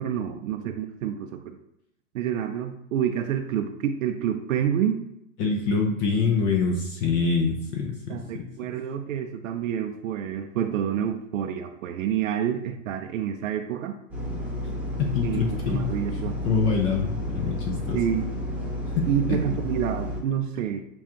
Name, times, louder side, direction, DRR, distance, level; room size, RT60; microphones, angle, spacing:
voice 1, 0.0-1.6 2.1-5.0 8.1-14.0 15.2-16.4 17.9-18.3 19.1-20.8, right 9 dB, 75° right, 6 dB, 0.5 m, -28 dB
voice 2, 5.4-8.5 15.0-15.9 16.4-18.0 19.0-19.4, left 5 dB, 25° left, 1 dB, 0.4 m, -25 dB
sound 1, 14.1-20.2, left 1 dB, 5° right, 1.0 m, -31 dB
7.0 x 2.3 x 2.9 m, 0.83 s
hypercardioid pair, 130°, 39 cm